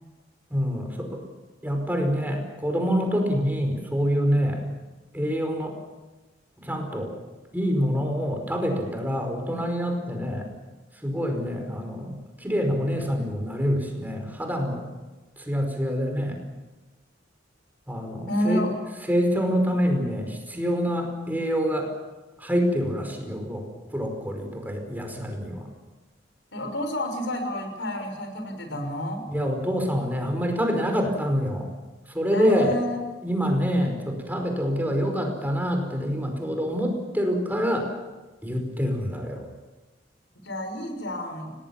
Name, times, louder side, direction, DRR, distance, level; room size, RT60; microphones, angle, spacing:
voice 1, 0.5-1.2 1.6-4.7 5.1-5.7 6.6-7.1 7.5-10.5 11.0-14.8 15.4-16.4 17.9-18.6 19.1-21.9 22.4-25.7 29.3-31.7 32.1-32.7 33.2-37.9 38.4-39.4, equal, 10° right, 3 dB, 5.1 m, -26 dB
voice 2, 18.3-18.8 26.5-29.3 32.3-33.0 40.4-41.5, left 1 dB, 75° left, 6 dB, 6.0 m, -29 dB
30.0 x 19.0 x 7.3 m, 1.2 s
head